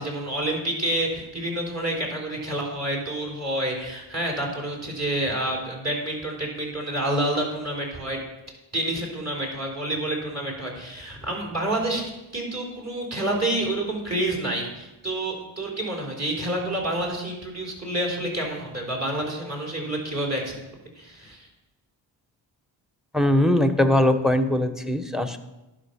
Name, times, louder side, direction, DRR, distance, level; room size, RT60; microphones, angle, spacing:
voice 1, 0.0-8.2 8.7-20.6 21.0-21.5, right 1 dB, 35° right, -1 dB, 3.8 m, -28 dB
voice 2, 23.1-25.4, left 1 dB, ahead, 9 dB, 1.0 m, -21 dB
11.0 x 5.8 x 5.8 m, 0.99 s
cardioid pair, 50°, 47 cm